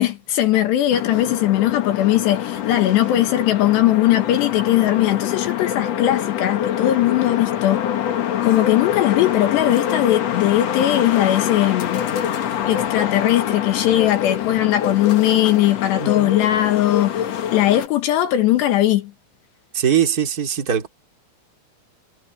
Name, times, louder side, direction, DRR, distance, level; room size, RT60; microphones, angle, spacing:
voice 1, 0.0-7.9 8.4-12.0 12.7-19.1, left 13 dB, 75° left, 3.5 m, -19 dB
sound 1, 0.9-17.9, left 10 dB, 60° left, 1.8 m, -25 dB
voice 2, 16.0-16.3 19.7-20.9, right 8 dB, 25° right, 2.4 m, -21 dB
omnidirectional pair, 5.1 m